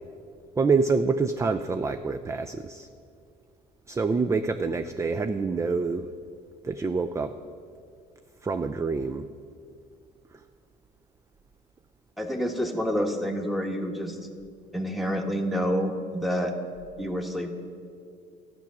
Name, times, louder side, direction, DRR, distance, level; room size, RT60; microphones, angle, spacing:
voice 1, 0.6-2.9 3.9-6.1 6.6-7.4 8.4-9.3, right 4 dB, 15° right, 9 dB, 0.4 m, -26 dB
voice 2, 12.2-14.2 14.7-16.5 17.0-17.5, equal, ahead, 4 dB, 1.3 m, -28 dB
13.0 x 5.9 x 9.2 m, 2.3 s
cardioid pair, 110°, 17 cm